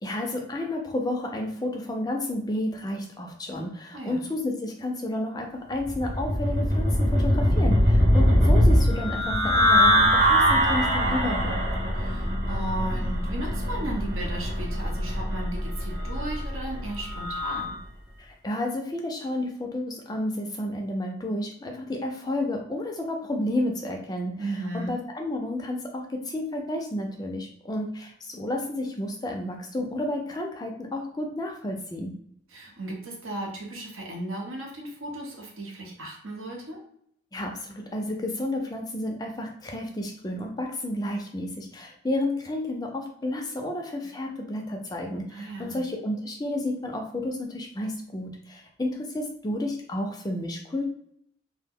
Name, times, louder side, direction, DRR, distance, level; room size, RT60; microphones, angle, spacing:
voice 1, 0.0-11.6 18.2-24.3 24.7-32.1 37.3-50.9, left 1 dB, 20° left, 2 dB, 0.3 m, -31 dB
sound 1, 5.9-17.7, equal, 35° right, 0.9 m, -22 dB
voice 2, 12.0-17.8 24.4-25.0 32.5-36.8 45.3-45.8, right 1 dB, 85° right, -1 dB, 0.9 m, -35 dB
2.2 x 2.0 x 3.5 m, 0.69 s
head